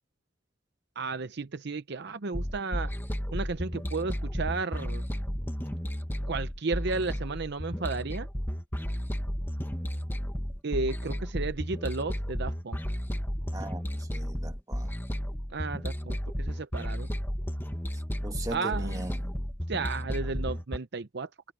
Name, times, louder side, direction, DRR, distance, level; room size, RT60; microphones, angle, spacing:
voice 1, 1.0-2.9 3.3-5.0 6.3-8.3 10.6-12.8 15.5-17.1 18.5-19.1 19.7-21.3, right 4 dB, 55° right, 0.7 m, -33 dB
sound 1, 2.3-20.8, equal, 10° left, 1.4 m, -33 dB
voice 2, 13.5-14.9 18.2-19.3, right 1 dB, 15° right, 1.7 m, -39 dB
head